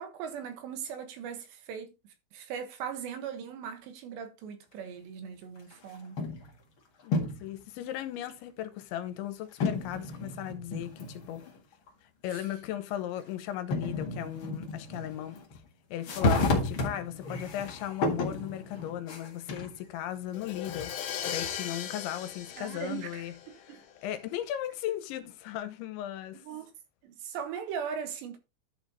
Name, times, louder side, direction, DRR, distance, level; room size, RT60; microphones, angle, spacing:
voice 1, 0.0-1.9 2.3-6.2 12.3-12.5 22.6-23.8 26.3-26.7 27.0-28.4, right 7 dB, 75° right, 3.5 m, -39 dB
sound 1, 5.7-6.5 7.0-7.6 8.3-8.4 9.6-11.6 11.9-12.0 13.2-13.3 13.7-15.6 16.0-19.8 20.3-21.8, left 2 dB, 50° left, 1.5 m, -32 dB
voice 2, 7.0-11.5 12.2-15.4 15.9-20.9 21.2-23.3 23.6-26.4, left 12 dB, 85° left, 3.3 m, -37 dB
Crash cymbal, 20.3-24.1, left 9 dB, 70° left, 2.0 m, -38 dB
11.0 x 5.2 x 4.1 m
omnidirectional pair, 5.3 m